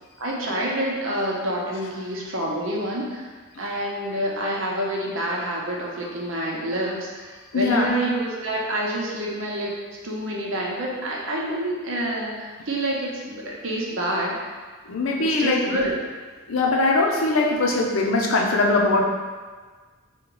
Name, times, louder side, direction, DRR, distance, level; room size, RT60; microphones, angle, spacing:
voice 1, 0.2-9.7 10.0-14.4 15.2-15.9, right 1 dB, 75° right, -3 dB, 0.8 m, -27 dB
voice 2, 7.5-7.9 14.9-15.7 16.5-19.0, left 2 dB, 85° left, 0 dB, 0.6 m, -21 dB
4.4 x 2.3 x 3.8 m, 1.4 s
head